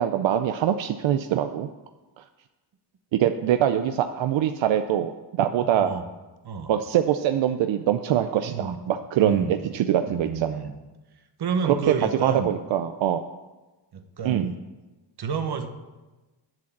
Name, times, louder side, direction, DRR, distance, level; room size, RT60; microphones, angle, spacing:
voice 1, 0.0-1.7 2.2-2.3 3.2-5.9 6.7-10.6 11.6-11.8 12.2-13.2 14.2-14.5, right 10 dB, 90° right, 8 dB, 0.6 m, -24 dB
voice 2, 8.4-8.8 9.2-9.5 10.1-10.7 11.4-12.5 13.9-14.6 15.2-15.7, right 5 dB, 60° right, 7 dB, 1.2 m, -29 dB
7.7 x 7.6 x 7.2 m, 1.2 s
cardioid pair, 90°, 44 cm